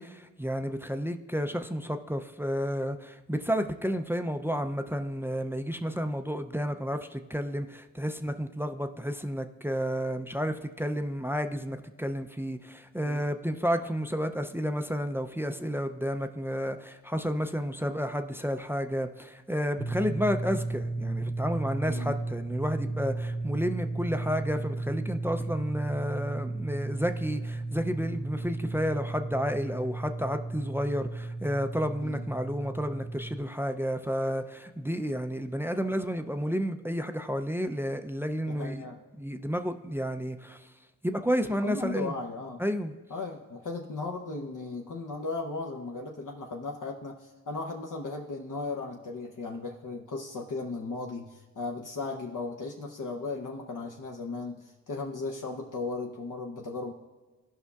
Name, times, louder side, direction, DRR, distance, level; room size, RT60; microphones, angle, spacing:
voice 1, 0.0-38.9 39.1-40.7 41.0-42.1 42.6-42.9, equal, 5° right, 0.4 m, -31 dB
sound 1, 19.8-33.4, right 2 dB, 35° left, 1.0 m, -34 dB
voice 2, 38.5-39.0 41.5-42.6 43.1-56.9, left 3 dB, 60° left, 0.8 m, -36 dB
14.5 x 5.5 x 2.3 m
wide cardioid pair, 70°, 35 cm